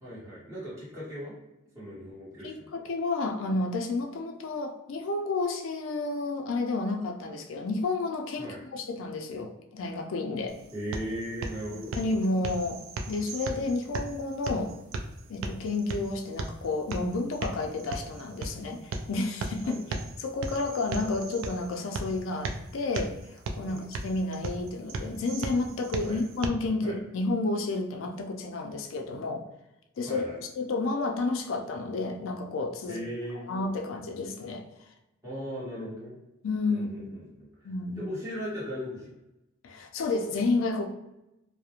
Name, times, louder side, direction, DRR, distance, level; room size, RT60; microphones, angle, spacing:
voice 1, 0.0-1.3 1.7-2.7 8.4-8.6 10.7-11.9 19.6-20.0 23.6-23.8 26.0-26.2 26.8-27.0 30.1-30.4 32.9-33.4 35.2-36.2 36.7-37.7 38.0-39.1, equal, 15° right, -9 dB, 1.0 m, -38 dB
voice 2, 2.4-10.6 12.0-12.8 13.1-14.7 15.3-19.8 20.2-29.4 30.0-30.2 30.5-33.0 33.5-34.7 36.4-37.1 37.6-38.0 39.6-40.9, left 3 dB, 80° left, 4 dB, 0.4 m, -31 dB
sound 1, 10.5-26.5, right 3 dB, 85° right, 0.3 m, -38 dB
2.4 x 2.0 x 2.8 m, 0.92 s
head